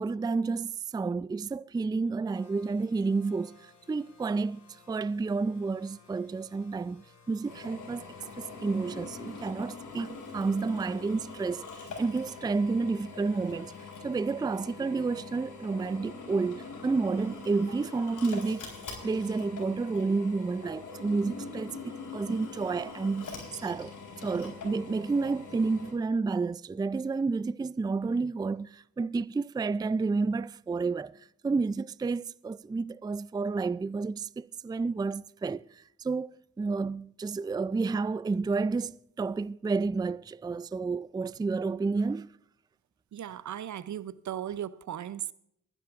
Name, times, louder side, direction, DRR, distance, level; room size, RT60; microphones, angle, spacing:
voice 1, 0.0-13.7 14.0-18.7 19.0-21.8 22.1-23.9 24.2-36.3 36.6-42.3, right 4 dB, 15° right, 0.4 m, -30 dB
sound 1, 2.3-9.5, left 6 dB, 55° left, 5.3 m, -57 dB
Drill, 7.5-25.9, left 4 dB, 75° left, 4.3 m, -43 dB
voice 2, 43.1-45.3, right 10 dB, 65° right, 0.7 m, -37 dB
23.5 x 11.0 x 2.5 m
supercardioid pair, 45°, 31 cm